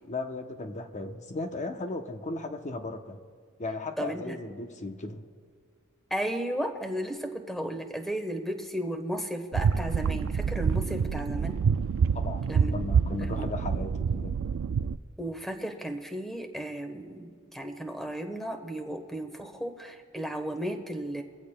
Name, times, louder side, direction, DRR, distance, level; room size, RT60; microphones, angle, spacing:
voice 1, 0.1-3.2 3.6-5.2 12.1-14.3, left 2 dB, 35° left, 5 dB, 0.8 m, -36 dB
voice 2, 4.0-4.3 6.1-11.6 12.5-12.7 13.2-13.4 15.2-21.2, right 1 dB, ahead, 5 dB, 1.1 m, -34 dB
sound 1, 9.5-15.0, right 6 dB, 65° right, 0.3 m, -27 dB
22.5 x 15.5 x 2.2 m, 2.1 s
head